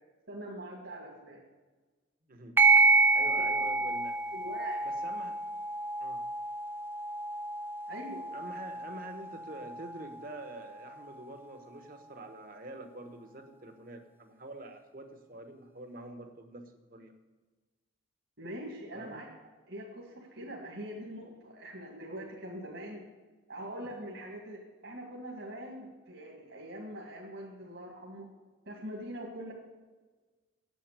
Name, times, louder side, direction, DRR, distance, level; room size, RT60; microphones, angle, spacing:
voice 1, 0.3-1.4 3.2-3.5 4.3-4.8 7.9-8.3 18.4-19.3 19.7-23.1 23.5-28.3 28.7-29.5, right 1 dB, 65° right, -2 dB, 2.0 m, -43 dB
voice 2, 2.3-2.6 3.1-4.2 4.8-5.4 6.0-6.2 8.3-17.1 18.9-19.2, right 2 dB, 45° right, 6 dB, 1.1 m, -46 dB
sound 1, 2.6-11.6, right 3 dB, 10° right, 0.3 m, -29 dB
9.3 x 7.9 x 6.8 m, 1.3 s
head